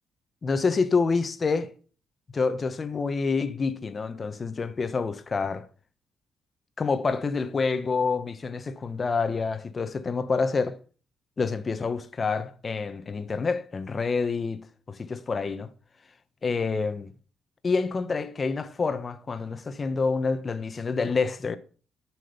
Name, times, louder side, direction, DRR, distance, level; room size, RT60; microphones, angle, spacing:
voice 1, 0.4-1.7 2.3-5.7 6.8-10.8 11.4-15.7 16.4-17.1 17.6-21.6, left 4 dB, 35° left, 1.3 m, -27 dB
11.5 x 6.3 x 6.9 m
cardioid pair, 90°, 0 cm